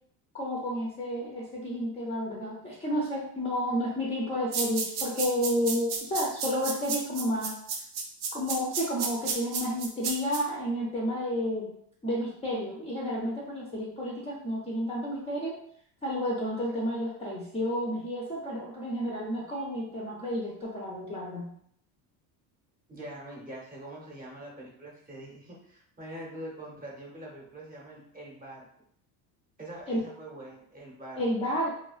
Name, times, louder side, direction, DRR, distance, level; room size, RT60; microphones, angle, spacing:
voice 1, 0.3-7.6 8.3-11.7 12.0-15.6 16.0-21.5 29.9-30.0 31.2-31.7, equal, 15° left, -6 dB, 0.4 m, -31 dB
sound 1, 4.5-10.4, right 5 dB, 60° right, 0.6 m, -32 dB
voice 2, 22.9-28.7 29.6-31.2, right 1 dB, 20° right, -3 dB, 0.7 m, -44 dB
2.3 x 2.2 x 2.3 m, 0.67 s
supercardioid pair, 105°, 44 cm